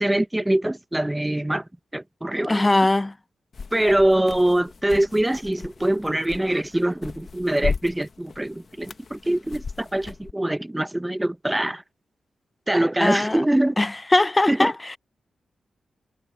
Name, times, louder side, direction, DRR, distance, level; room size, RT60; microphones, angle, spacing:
voice 1, 0.0-1.6 1.9-2.7 3.7-11.8 12.7-13.7 14.5-14.7, right 1 dB, 10° right, 0.8 m, -23 dB
voice 2, 2.4-3.1 13.0-13.4 13.8-15.0, left 2 dB, 20° left, 0.5 m, -21 dB
sound 1, 3.5-10.3, left 5 dB, 55° left, 1.4 m, -36 dB
cardioid pair, 75°, 0 cm